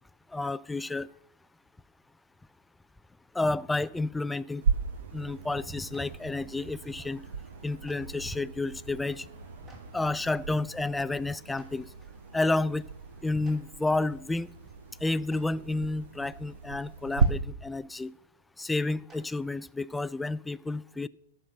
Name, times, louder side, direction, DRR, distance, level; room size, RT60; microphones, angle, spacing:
voice 1, 0.3-1.1 3.3-4.6 5.1-7.2 7.6-9.3 9.9-11.9 12.3-12.8 13.2-14.5 15.0-18.1 18.6-21.1, left 2 dB, 5° left, 0.3 m, -30 dB
sound 1, 4.6-17.3, right 5 dB, 65° right, 0.9 m, -35 dB
Clapping, 5.9-6.0 7.8-8.0 9.7-9.8 11.5-11.7 13.4-13.5 15.3-15.4 17.2-17.3 19.1-19.2, right 1 dB, 20° right, 2.9 m, -53 dB
12.0 x 6.7 x 6.5 m
figure-of-eight pair, 100°, 0 cm